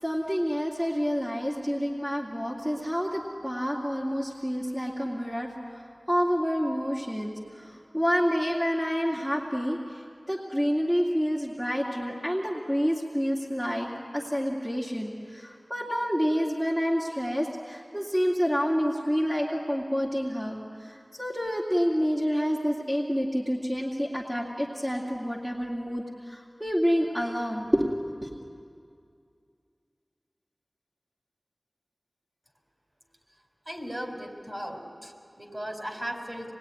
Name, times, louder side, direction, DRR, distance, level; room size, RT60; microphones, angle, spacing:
voice 1, 0.0-10.0 10.3-27.9 28.2-28.4, equal, 5° right, -4 dB, 2.4 m, -28 dB
voice 2, 33.7-36.5, equal, 30° right, 2 dB, 4.3 m, -37 dB
26.0 x 20.5 x 9.7 m, 2.3 s
wide cardioid pair, 50°, 0 cm